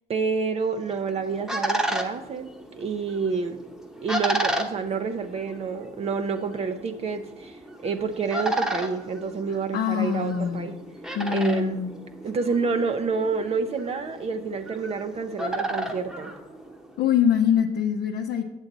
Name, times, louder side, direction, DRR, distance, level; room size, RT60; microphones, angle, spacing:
voice 1, 0.1-2.5 2.8-3.6 4.0-10.7 11.3-11.8 12.2-16.3, right 5 dB, 40° right, 7 dB, 0.6 m, -28 dB
sound 1, 0.8-17.1, right 1 dB, 5° right, 0.9 m, -33 dB
voice 2, 9.5-10.7 11.2-11.9 17.0-18.4, left 8 dB, 65° left, 2 dB, 0.6 m, -24 dB
8.1 x 7.1 x 4.0 m, 0.99 s
cardioid pair, 110°, 17 cm